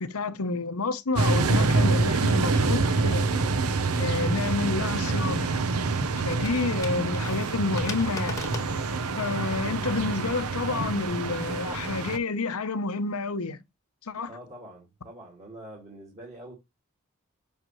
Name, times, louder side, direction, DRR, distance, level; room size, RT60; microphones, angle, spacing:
voice 1, 0.0-3.3 4.0-5.6 6.2-8.5 9.2-13.6 14.0-14.3, left 3 dB, 80° left, 0.9 m, -29 dB
sound 1, 1.2-12.2, right 3 dB, 80° right, 0.8 m, -26 dB
sound 2, 4.6-9.9, left 2 dB, 15° left, 1.2 m, -41 dB
voice 2, 14.3-16.6, right 1 dB, 30° right, 2.2 m, -45 dB
7.9 x 5.4 x 3.1 m
head